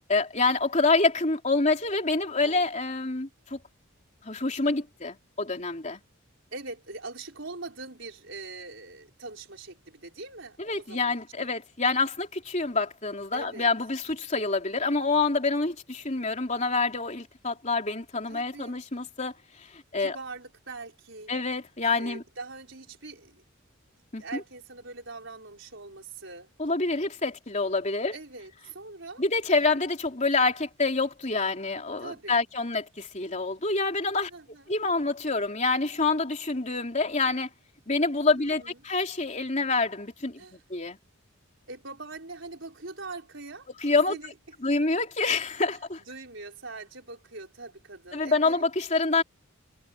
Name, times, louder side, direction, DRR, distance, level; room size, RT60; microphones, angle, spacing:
voice 1, 0.0-3.6 4.2-6.0 10.6-19.3 19.7-20.2 21.3-22.2 24.1-24.4 26.6-28.1 29.2-34.3 34.7-37.5 37.9-41.0 43.8-44.2 44.6-46.0 48.1-49.2, left 3 dB, 35° left, 3.4 m, -27 dB
voice 2, 6.5-11.5 13.3-13.7 18.3-18.8 20.0-21.3 22.0-23.4 24.2-26.5 28.1-29.2 32.0-32.4 34.3-34.7 38.4-38.8 40.4-40.6 41.7-43.7 44.1-44.3 46.0-48.7, right 3 dB, 60° right, 5.7 m, -42 dB
head